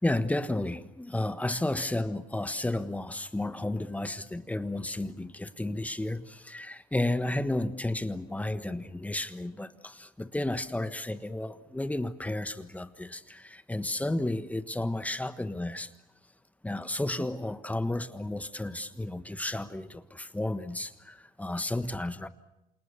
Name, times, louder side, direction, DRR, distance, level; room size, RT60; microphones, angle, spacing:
voice 1, 0.0-15.9 16.6-22.3, left 1 dB, 10° left, 1.4 m, -32 dB
28.5 x 28.0 x 6.9 m
cardioid pair, 110°, 17 cm